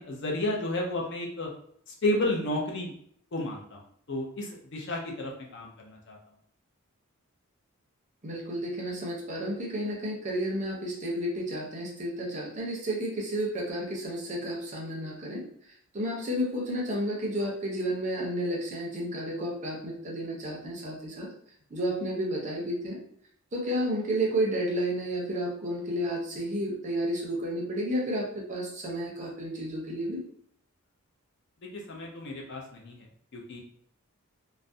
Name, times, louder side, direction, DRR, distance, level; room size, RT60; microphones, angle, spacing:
voice 1, 0.0-1.5 1.9-2.9 3.3-3.8 4.1-6.2 31.6-33.1 33.3-33.6, left 1 dB, 55° left, -1 dB, 0.5 m, -32 dB
voice 2, 8.2-15.4 15.9-21.3 21.7-23.0 23.5-30.2, equal, 35° right, -2 dB, 0.5 m, -31 dB
2.3 x 2.0 x 2.6 m, 0.64 s
head